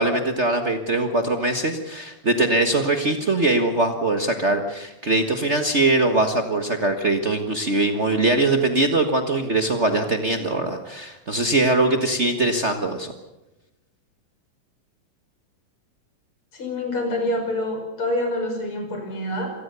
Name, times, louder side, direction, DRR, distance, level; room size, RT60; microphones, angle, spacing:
voice 1, 0.0-13.1, right 2 dB, 75° right, 6 dB, 0.6 m, -22 dB
voice 2, 16.5-19.5, left 1 dB, 40° left, 4 dB, 6.4 m, -26 dB
26.5 x 19.0 x 6.9 m, 1.0 s
omnidirectional pair, 3.9 m